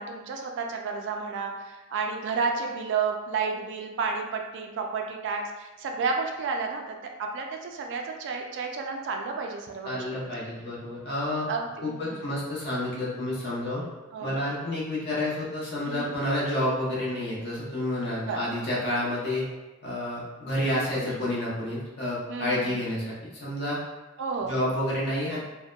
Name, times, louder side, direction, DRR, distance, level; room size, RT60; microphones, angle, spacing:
voice 1, 0.0-10.3 11.5-12.2 14.1-14.4 15.9-16.1 18.3-18.4 21.0-21.2 22.3-22.8 24.2-24.5, right 4 dB, 55° right, 2 dB, 0.3 m, -31 dB
voice 2, 9.8-11.5 11.8-13.8 14.2-19.4 19.8-23.1 23.4-23.8 24.5-25.4, left 1 dB, 50° left, -7 dB, 0.8 m, -29 dB
2.7 x 2.1 x 2.2 m, 1.1 s
head